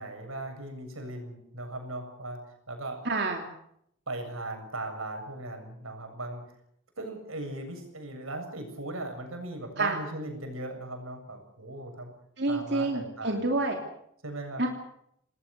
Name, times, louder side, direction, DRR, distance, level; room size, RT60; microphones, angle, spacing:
voice 1, 0.0-2.4 2.7-3.0 4.1-6.4 7.0-12.1 12.5-13.4 14.2-14.6, right 2 dB, 90° right, 5 dB, 7.7 m, -38 dB
voice 2, 3.0-3.4 9.8-10.0 12.4-13.8 14.6-14.7, right 2 dB, 55° right, 2 dB, 3.2 m, -28 dB
29.0 x 20.0 x 6.9 m, 0.73 s
head